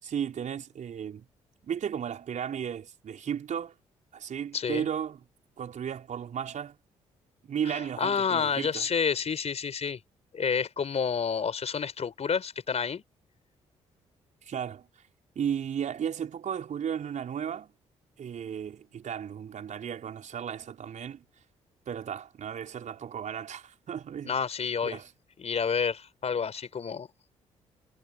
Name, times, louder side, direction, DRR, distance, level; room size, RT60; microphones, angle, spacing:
voice 1, 0.0-1.3 1.6-3.7 4.1-5.2 5.6-6.8 7.4-8.8 14.4-14.9 15.3-17.7 18.2-21.2 21.9-24.3 24.8-25.1, right 8 dB, 50° right, 4.6 m, -34 dB
voice 2, 4.5-4.8 7.7-10.0 10.3-13.0 24.2-25.0 25.4-27.1, left 6 dB, 40° left, 4.8 m, -29 dB
figure-of-eight pair, 40°, 16 cm